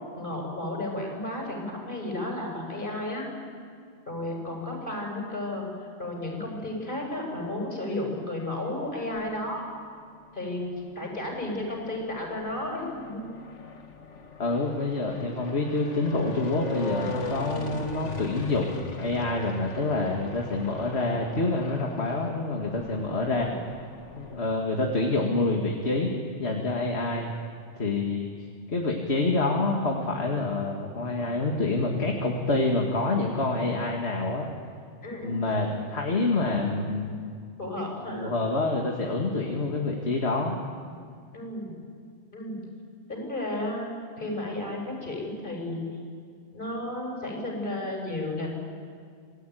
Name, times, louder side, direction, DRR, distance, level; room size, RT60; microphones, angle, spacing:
voice 1, 0.1-3.2 4.1-5.7 6.0-9.6 10.3-13.2 23.2-23.6 35.0-35.7 37.6-38.4 41.3-41.7 42.3-42.6 43.1-43.9 44.2-45.8 46.5-48.5, left 1 dB, 45° left, 0 dB, 6.6 m, -33 dB
sound 1, 8.9-9.6 10.4-24.4, left 3 dB, 90° left, 2.0 m, -40 dB
voice 2, 14.4-23.5 24.1-26.1 26.4-27.3 27.8-28.3 28.7-34.5 35.2-37.1 38.1-40.6, left 2 dB, 65° left, 0 dB, 2.4 m, -27 dB
27.5 x 20.0 x 9.4 m, 2.2 s
omnidirectional pair, 1.2 m